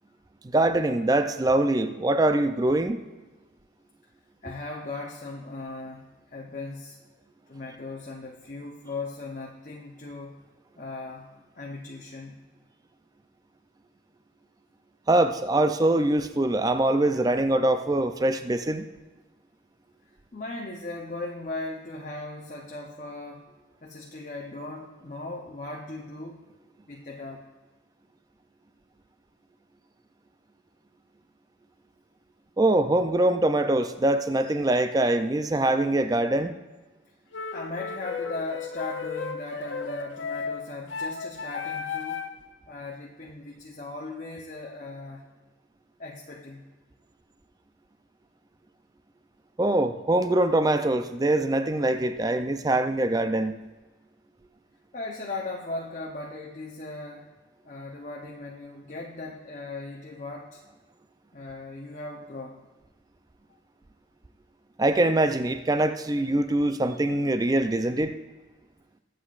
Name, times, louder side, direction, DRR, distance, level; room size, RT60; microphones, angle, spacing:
voice 1, 0.4-3.0 15.1-18.8 32.6-36.6 49.6-53.6 64.8-68.2, right 1 dB, 20° right, 9 dB, 0.4 m, -23 dB
voice 2, 4.4-7.0 7.5-10.4 10.8-11.3 11.5-12.4 20.1-23.4 23.8-26.4 26.9-27.5 37.5-42.2 42.7-45.3 46.0-46.7 54.9-57.3 57.6-60.6 61.3-62.7, left 2 dB, 40° left, -1 dB, 0.8 m, -38 dB
sound 1, 37.3-42.4, left 5 dB, 80° left, 0.7 m, -34 dB
22.0 x 7.9 x 2.5 m, 1.2 s
head